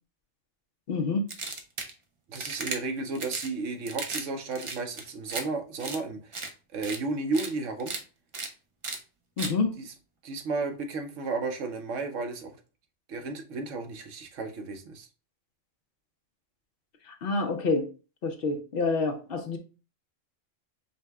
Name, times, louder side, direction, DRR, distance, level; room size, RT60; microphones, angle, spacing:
voice 1, 0.9-1.3 9.4-9.7 17.1-17.9 18.2-19.6, left 3 dB, 60° left, 0.7 m, -27 dB
sound 1, 1.3-1.9 2.3-2.8 3.1-3.5 3.9-4.2 4.5-5.4 5.8-6.0 6.3-6.5 6.8-7.0 7.3-7.5 7.8-8.0 8.3-8.5 8.8-9.0 9.4-9.5, right 3 dB, 45° right, 0.4 m, -35 dB
voice 2, 2.3-6.4 6.7-7.9 9.8-9.9 10.2-12.6 13.1-15.1, right 3 dB, 85° right, 1.1 m, -33 dB
5.4 x 2.1 x 3.3 m
omnidirectional pair, 1.3 m